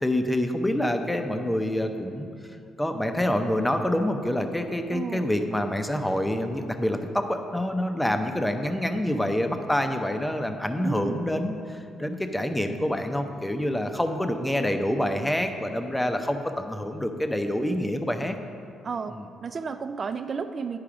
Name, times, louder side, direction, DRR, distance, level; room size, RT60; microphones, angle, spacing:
voice 1, 0.0-2.3 2.8-18.4 19.1-19.2, left 1 dB, 5° left, 6 dB, 0.6 m, -27 dB
voice 2, 4.9-5.3 10.8-11.2 18.8-19.1 19.4-20.8, right 5 dB, 40° right, 10 dB, 0.3 m, -32 dB
10.5 x 4.8 x 4.9 m, 2.5 s
cardioid pair, 90°, 0 cm